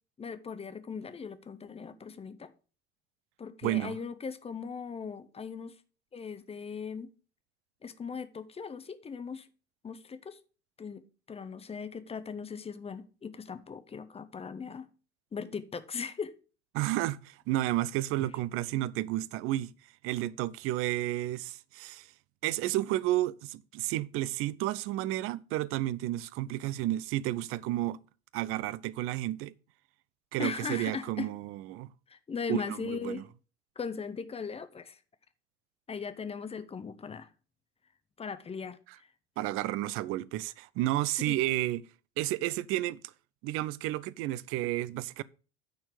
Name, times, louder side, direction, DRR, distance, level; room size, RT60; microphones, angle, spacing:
voice 1, 0.2-2.5 3.4-5.8 6.1-7.1 7.8-9.5 9.8-10.4 10.8-11.0 11.3-14.9 15.3-16.3 30.4-31.3 32.1-33.2 33.8-35.0 35.9-37.3 38.2-38.8 41.3-41.4, left 5 dB, 15° left, 0.9 m, -39 dB
voice 2, 3.6-4.0 16.7-19.7 20.0-22.1 22.4-28.0 28.3-29.5 30.3-31.9 32.5-33.2 39.4-41.8 42.2-43.0 43.4-45.2, right 15 dB, 40° right, 0.5 m, -31 dB
9.4 x 4.4 x 6.7 m
figure-of-eight pair, 75°, 35 cm